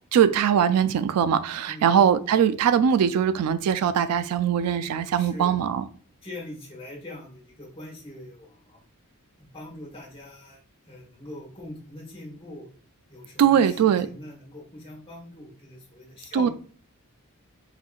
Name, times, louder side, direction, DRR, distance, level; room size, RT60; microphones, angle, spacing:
voice 1, 0.1-5.8 13.4-14.1 16.3-16.5, right 8 dB, 85° right, 0.3 m, -21 dB
voice 2, 5.2-5.6 6.2-8.8 9.4-10.6 10.9-12.7 13.1-16.5, left 1 dB, 25° left, 1.2 m, -42 dB
4.1 x 2.7 x 2.4 m
head